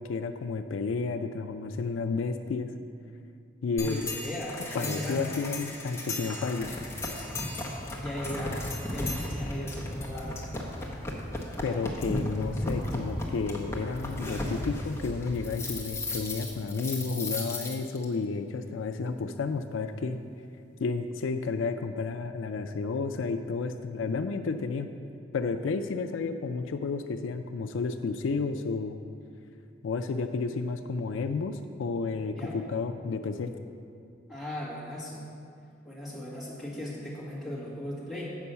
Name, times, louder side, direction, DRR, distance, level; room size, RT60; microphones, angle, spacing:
voice 1, 0.0-2.7 3.6-4.1 4.7-6.7 11.6-20.2 20.8-24.9 25.3-29.0 29.8-33.5, left 4 dB, 80° left, 8 dB, 0.4 m, -31 dB
sound 1, 3.8-18.0, left 1 dB, 15° left, 0.8 m, -35 dB
voice 2, 3.8-5.2 8.0-8.6 8.9-10.4 32.3-32.6 34.3-35.3 35.8-38.3, left 1 dB, ahead, -9 dB, 1.9 m, -37 dB
8.1 x 5.3 x 5.6 m, 2.4 s
head